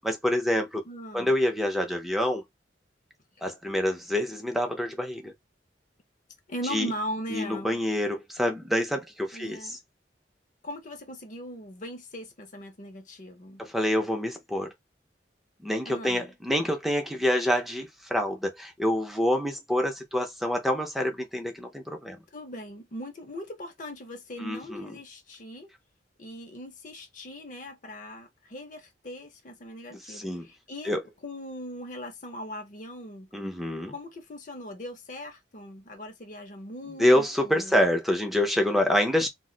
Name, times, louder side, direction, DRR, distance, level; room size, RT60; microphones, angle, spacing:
voice 1, 0.0-0.8 1.1-2.4 3.4-5.3 6.7-6.9 7.3-9.8 13.6-14.7 15.6-22.2 24.4-24.9 29.9-30.5 30.8-31.0 33.3-33.9 37.0-39.3, left 1 dB, ahead, 0.6 m, -27 dB
voice 2, 0.8-1.3 6.5-7.8 9.3-9.8 10.6-13.6 15.9-16.3 22.3-25.7 26.2-30.9 31.2-33.3 33.9-37.8, equal, 45° left, 0.7 m, -39 dB
2.4 x 2.2 x 3.8 m
head